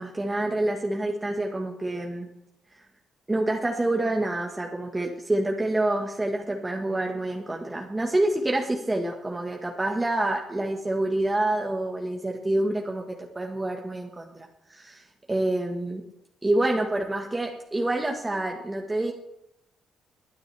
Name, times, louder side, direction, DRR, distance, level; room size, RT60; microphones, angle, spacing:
voice 1, 0.0-2.3 3.3-14.3 14.7-16.0 16.4-19.1, right 1 dB, 15° right, 0 dB, 1.6 m, -27 dB
21.5 x 9.7 x 3.5 m, 0.81 s
cardioid pair, 90°, 0 cm